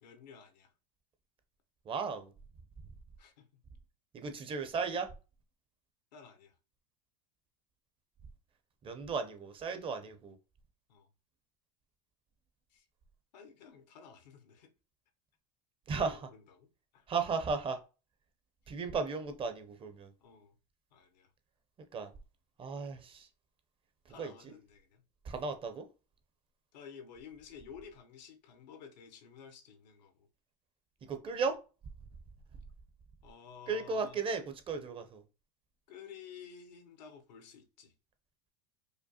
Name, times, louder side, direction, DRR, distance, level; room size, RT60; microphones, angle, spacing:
voice 1, 0.0-0.7 3.2-3.5 6.1-6.5 10.9-11.1 12.7-12.8 13.3-14.7 15.9-17.1 20.2-20.6 20.9-21.3 24.1-25.0 26.7-30.3 33.2-34.2 35.9-37.9, left 7 dB, 85° left, 0.7 m, -52 dB
voice 2, 1.9-2.3 4.1-5.1 8.8-10.4 15.9-16.2 17.1-17.8 18.7-20.1 21.9-22.1 22.6-23.3 24.2-24.5 25.3-25.9 31.1-31.6 33.7-35.2, right 4 dB, 25° right, 0.5 m, -35 dB
4.9 x 2.1 x 2.8 m
supercardioid pair, 115°, 21 cm